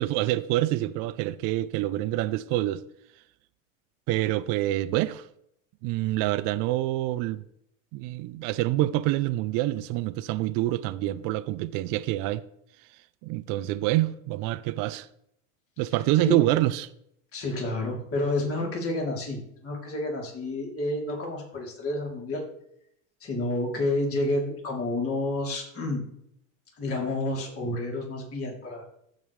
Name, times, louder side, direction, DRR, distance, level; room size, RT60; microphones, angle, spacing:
voice 1, 0.0-2.8 4.1-5.3 5.8-7.4 7.9-12.4 13.2-15.1 15.8-16.9, right 16 dB, 55° right, 0.5 m, -26 dB
voice 2, 17.3-22.4 23.2-26.0 26.8-28.8, left 2 dB, 35° left, 3.3 m, -29 dB
15.5 x 5.4 x 3.2 m
supercardioid pair, 110°, 38 cm